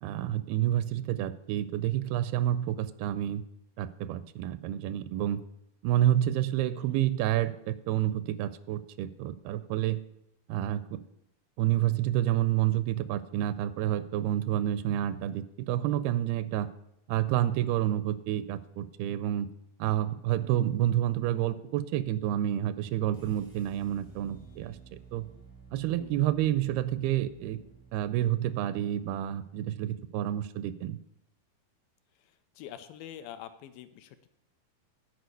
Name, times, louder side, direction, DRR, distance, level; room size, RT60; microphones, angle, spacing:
voice 1, 0.0-3.4 3.8-5.4 5.8-10.0 10.5-11.0 11.6-16.7 17.1-19.5 19.8-24.8 25.1-25.3 25.7-27.6 27.9-31.0, right 12 dB, 85° right, 14 dB, 2.4 m, -29 dB
sound 1, 23.1-29.3, right 5 dB, 20° left, 0.5 m, -54 dB
voice 2, 26.0-26.3 32.2-34.3, left 11 dB, 80° left, 10 dB, 2.2 m, -46 dB
10.5 x 4.9 x 8.2 m, 0.82 s
omnidirectional pair, 4.5 m